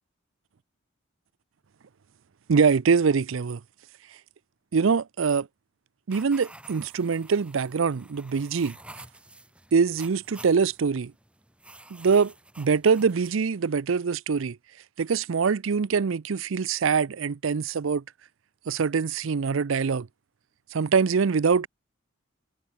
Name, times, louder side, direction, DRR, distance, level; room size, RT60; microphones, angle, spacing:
voice 1, 2.5-3.6 4.7-5.5 6.1-8.7 9.7-11.1 11.9-14.6 15.0-18.0 18.7-20.1 20.7-21.7, right 5 dB, 75° right, 0.5 m, -24 dB
sound 1, 6.1-13.3, right 1 dB, 5° right, 4.5 m, -50 dB
head